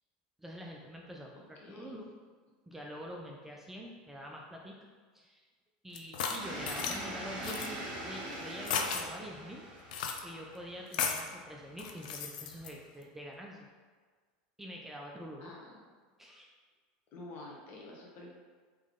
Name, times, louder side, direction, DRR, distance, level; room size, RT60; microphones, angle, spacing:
voice 1, 0.4-2.1 2.7-4.9 5.1-5.5 5.8-9.6 10.2-13.7 14.6-15.5 16.2-16.5, equal, 5° right, -1 dB, 0.4 m, -46 dB
voice 2, 1.3-2.0 6.8-7.3 15.4-15.8 17.1-18.3, left 2 dB, 50° left, -2 dB, 1.1 m, -49 dB
sound 1, 5.9-7.0 7.4-7.7 8.6-9.0 9.9-10.2 10.9-11.3 11.8-12.7, left 6 dB, 80° left, 0.5 m, -34 dB
sound 2, 6.4-12.9, right 1 dB, 35° right, 1.4 m, -43 dB
3.8 x 3.1 x 3.7 m, 1.5 s
supercardioid pair, 115°, 4 cm